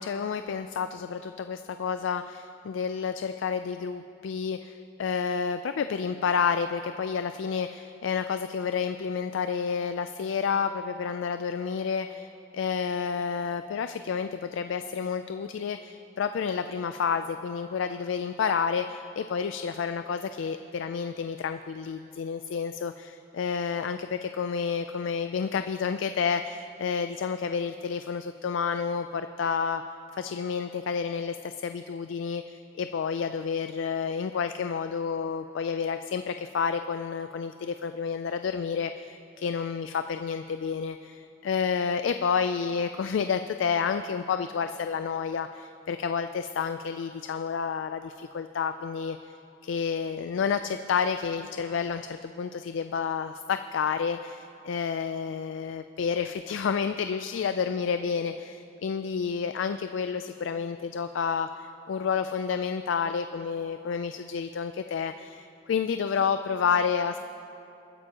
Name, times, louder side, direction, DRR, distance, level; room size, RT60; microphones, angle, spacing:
voice 1, 0.0-29.8 30.1-49.4 49.6-67.2, left 6 dB, 75° left, 9 dB, 0.3 m, -30 dB
23.5 x 9.8 x 2.9 m, 2.8 s
head